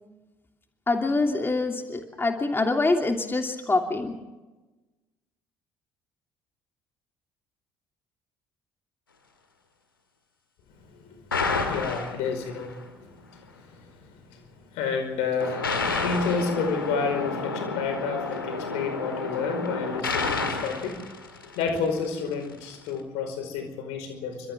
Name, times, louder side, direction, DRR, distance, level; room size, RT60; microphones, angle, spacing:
voice 1, 0.9-4.1, left 3 dB, 20° left, 3 dB, 2.9 m, -25 dB
voice 2, 10.8-21.0 21.5-24.5, left 5 dB, 70° left, 6 dB, 5.0 m, -31 dB
sound 1, 11.3-12.7 15.4-22.0, left 4 dB, 90° left, 1.8 m, -30 dB
28.5 x 25.0 x 3.7 m, 1.1 s
figure-of-eight pair, 50°, 11 cm